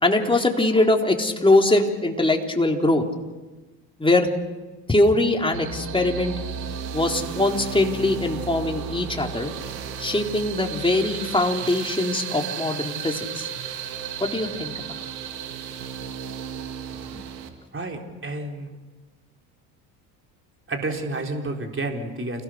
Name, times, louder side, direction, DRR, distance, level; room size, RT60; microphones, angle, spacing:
voice 1, 0.0-3.0 4.0-4.3 4.9-6.3 6.9-9.5 10.0-13.5 14.2-14.7 17.1-17.2, left 2 dB, 10° left, 1 dB, 3.9 m, -22 dB
sound 1, 5.5-17.5, right 7 dB, 90° right, 2.2 m, -34 dB
voice 2, 17.7-18.7 20.7-22.4, right 2 dB, 25° right, 3 dB, 4.1 m, -30 dB
29.5 x 18.0 x 6.6 m, 1.2 s
hypercardioid pair, 65°, 49 cm